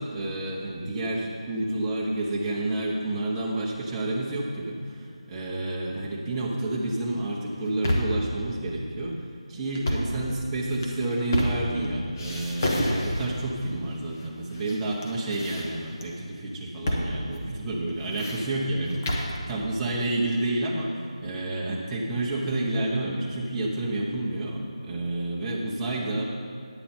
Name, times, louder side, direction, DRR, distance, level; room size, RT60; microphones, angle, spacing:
voice 1, 0.0-9.2 9.5-26.3, right 2 dB, 10° right, -4 dB, 1.0 m, -29 dB
sound 1, 7.5-8.3 9.7-10.2 10.7-11.9 12.2-13.5 14.2-14.8 15.0-16.1 16.9-17.1 17.3-17.4 17.9-19.4, left 1 dB, 30° left, 1.2 m, -29 dB
10.0 x 8.9 x 4.4 m, 2.3 s
figure-of-eight pair, 170°, 3 cm